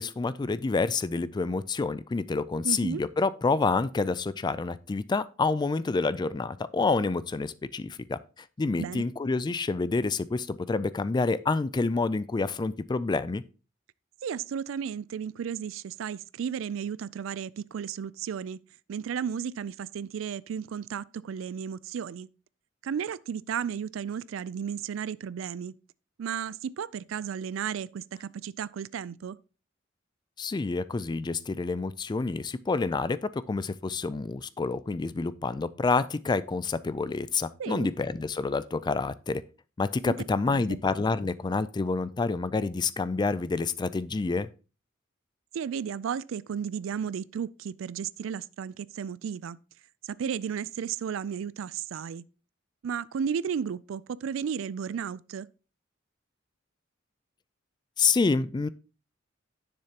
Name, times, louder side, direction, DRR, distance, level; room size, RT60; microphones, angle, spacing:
voice 1, 0.0-8.2 8.6-13.4 30.4-39.4 39.8-44.5 58.0-58.7, left 4 dB, 20° left, 0.3 m, -28 dB
voice 2, 2.6-3.0 8.8-9.1 14.2-18.6 18.9-22.3 22.8-25.7 26.2-29.4 37.6-37.9 40.0-40.1 40.5-40.8 45.5-49.6 50.0-52.2 52.8-55.5, right 7 dB, 85° right, 0.3 m, -34 dB
9.8 x 6.9 x 2.9 m
head